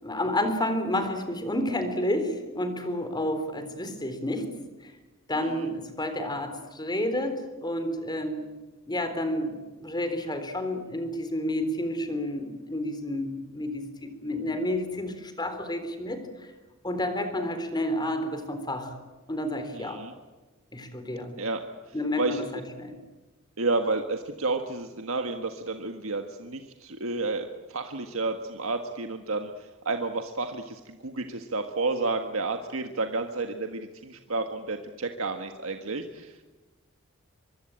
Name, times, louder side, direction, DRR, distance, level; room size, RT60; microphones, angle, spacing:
voice 1, 0.0-4.6 4.8-4.9 5.3-8.5 8.9-16.5 16.8-19.0 19.3-20.1 20.7-21.3 21.9-23.0, left 1 dB, 20° left, 8 dB, 3.9 m, -30 dB
voice 2, 19.7-20.1 21.4-21.6 21.9-22.4 23.6-36.4, right 3 dB, 75° right, 5 dB, 1.6 m, -31 dB
24.5 x 23.5 x 8.9 m, 1.2 s
head